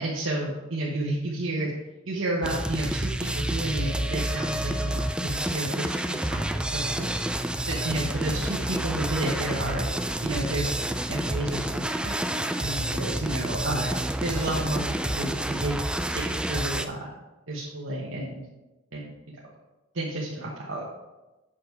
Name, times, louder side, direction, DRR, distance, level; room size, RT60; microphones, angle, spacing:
voice 1, 0.0-1.7 2.0-7.2 7.7-9.9 10.2-15.7 16.1-17.1 17.5-18.4 18.9-19.1 19.9-20.8, right 1 dB, 75° right, -5 dB, 1.3 m, -31 dB
sound 1, 2.4-16.8, right 1 dB, 5° right, 0.3 m, -29 dB
7.7 x 6.2 x 4.7 m, 1.1 s
head